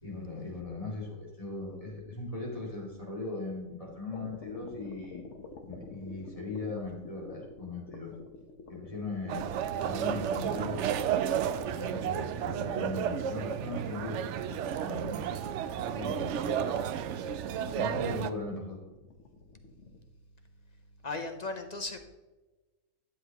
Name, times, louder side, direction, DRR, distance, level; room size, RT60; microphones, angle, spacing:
voice 1, 0.0-5.3 5.7-8.1 8.7-11.1 11.7-15.3 15.8-16.8 17.7-18.8, left 3 dB, 25° left, -3 dB, 2.6 m, -39 dB
sound 1, 4.1-20.0, left 3 dB, 60° left, 1.4 m, -50 dB
sound 2, 9.3-18.3, right 9 dB, 65° right, 0.8 m, -32 dB
voice 2, 21.0-22.0, left 3 dB, 40° left, 6 dB, 0.6 m, -36 dB
12.0 x 7.7 x 3.0 m, 1.1 s
omnidirectional pair, 1.5 m